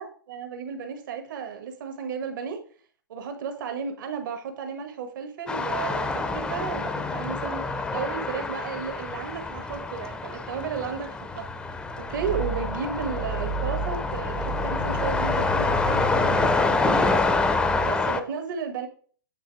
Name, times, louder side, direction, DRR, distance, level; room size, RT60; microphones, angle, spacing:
voice 1, 0.0-2.6 3.1-11.5 12.0-17.1 17.8-18.9, right 6 dB, 65° right, 6 dB, 1.7 m, -33 dB
sound 1, 5.5-18.2, left 3 dB, 5° left, 0.5 m, -27 dB
sound 2, 12.1-17.9, right 5 dB, 35° right, 0.7 m, -34 dB
9.2 x 3.4 x 4.8 m, 0.44 s
hypercardioid pair, 145°, 11 cm